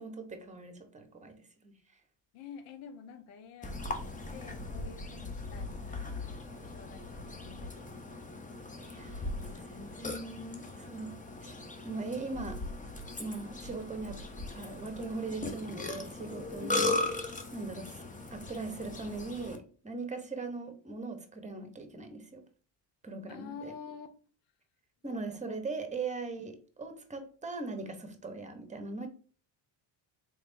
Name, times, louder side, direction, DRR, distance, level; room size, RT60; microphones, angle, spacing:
voice 1, 0.0-1.8 8.8-11.6 11.8-12.6 13.2-14.2 14.5-18.0 18.3-22.4 23.0-23.7 25.0-29.1, right 3 dB, 15° right, 0.9 m, -40 dB
voice 2, 2.3-6.4 6.6-8.3 16.6-17.0 23.3-24.1 25.1-25.2 25.5-25.6, left 7 dB, 85° left, 0.8 m, -49 dB
Burping eructation, 3.6-19.6, left 2 dB, 15° left, 0.7 m, -38 dB
3.6 x 3.3 x 2.6 m
supercardioid pair, 75°, 50 cm